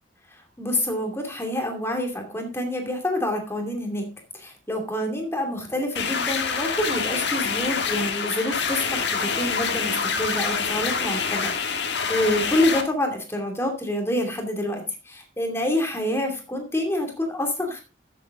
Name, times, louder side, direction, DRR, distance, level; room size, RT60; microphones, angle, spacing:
voice 1, 0.3-4.1 4.3-17.8, left 1 dB, 15° left, 2 dB, 2.5 m, -27 dB
sound 1, 6.0-12.8, left 5 dB, 65° left, 1.6 m, -26 dB
14.0 x 7.5 x 3.7 m, 0.31 s
head